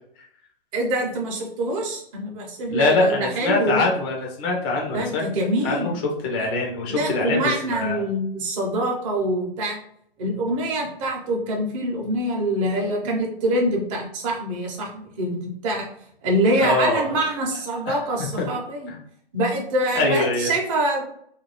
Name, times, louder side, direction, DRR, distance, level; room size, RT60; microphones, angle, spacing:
voice 1, 0.7-3.9 4.9-6.0 6.9-9.8 10.2-15.9 16.2-18.9 19.3-21.0, right 1 dB, 35° right, 0 dB, 0.8 m, -25 dB
voice 2, 2.7-5.2 5.6-5.9 6.2-8.0 16.6-17.2 17.9-18.0 18.4-18.5 18.9-19.0 20.0-20.5, left 2 dB, 15° left, 0 dB, 0.4 m, -23 dB
2.6 x 2.3 x 3.1 m, 0.66 s
hypercardioid pair, 135°, 29 cm